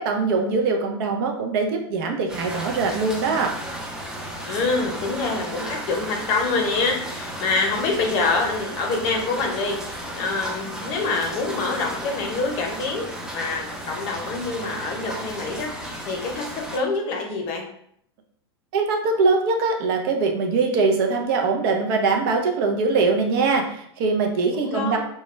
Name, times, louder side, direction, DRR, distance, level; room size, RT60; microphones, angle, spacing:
voice 1, 0.0-3.5 18.7-25.0, right 4 dB, 60° right, 3 dB, 0.5 m, -22 dB
sound 1, 2.3-16.8, right 1 dB, 5° right, 0.5 m, -34 dB
voice 2, 4.5-17.6 24.6-25.0, left 3 dB, 45° left, 2 dB, 0.7 m, -26 dB
2.2 x 2.1 x 3.1 m, 0.69 s
hypercardioid pair, 110°, 14 cm